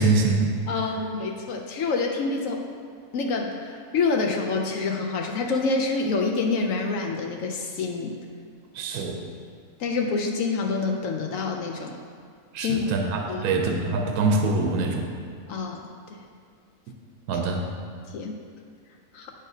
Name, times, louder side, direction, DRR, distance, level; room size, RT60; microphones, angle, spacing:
voice 1, 0.0-0.6 8.7-9.2 12.5-15.1 17.3-17.6, right 3 dB, 75° right, 2 dB, 1.1 m, -24 dB
voice 2, 0.7-2.6 3.1-8.1 9.8-12.0 12.6-12.9 13.3-13.4 15.5-15.9 18.1-18.4 19.1-19.3, left 4 dB, 70° left, 2 dB, 0.9 m, -27 dB
8.3 x 6.4 x 2.7 m, 2.1 s
omnidirectional pair, 1.6 m